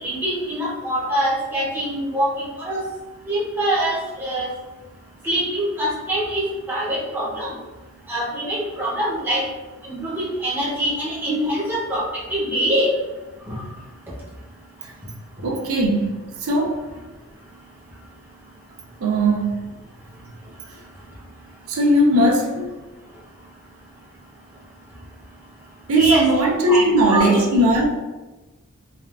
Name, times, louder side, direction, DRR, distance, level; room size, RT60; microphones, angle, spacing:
voice 1, 0.0-2.9 3.3-4.5 5.2-6.4 6.7-7.6 8.1-9.4 9.8-12.9 13.5-13.6 26.0-26.3 26.7-26.8 27.1-27.4, right 1 dB, 10° right, -7 dB, 0.6 m, -24 dB
voice 2, 15.4-16.8 19.0-19.6 21.7-22.7 25.9-27.8, right 1 dB, 75° right, 0 dB, 0.5 m, -18 dB
3.4 x 2.3 x 2.3 m, 1.1 s
head